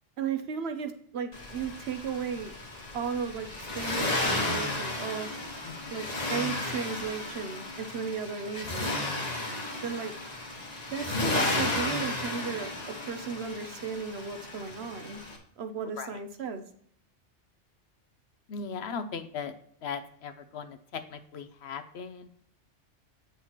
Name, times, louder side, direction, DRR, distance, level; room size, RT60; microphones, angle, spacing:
voice 1, 0.2-2.5 2.9-5.3 5.9-9.2 9.8-10.1 10.9-15.2 15.6-16.6, right 6 dB, 65° right, 8 dB, 0.9 m, -35 dB
Accelerating revving vroom, 1.3-15.4, left 2 dB, 35° left, 1.3 m, -33 dB
voice 2, 5.6-6.1 16.0-16.2 18.5-19.5 19.8-22.3, left 5 dB, 65° left, 10 dB, 0.9 m, -38 dB
8.2 x 6.5 x 3.0 m, 0.65 s
omnidirectional pair, 1.2 m